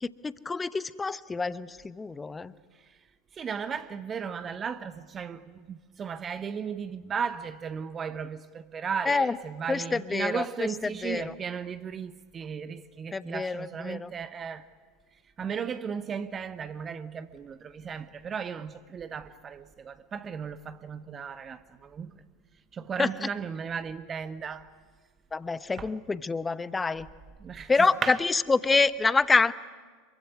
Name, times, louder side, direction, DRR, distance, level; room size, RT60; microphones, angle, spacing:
voice 1, 0.0-2.5 9.1-9.4 9.7-10.4 10.8-11.3 13.1-14.1 23.0-23.3 25.3-27.1 27.7-29.5, left 4 dB, 15° left, 0.9 m, -27 dB
voice 2, 3.3-14.7 15.4-22.1 22.7-24.7 25.8-25.9 27.4-28.2, right 6 dB, 25° right, 0.9 m, -35 dB
26.5 x 23.5 x 9.6 m
figure-of-eight pair, 80°, 0 cm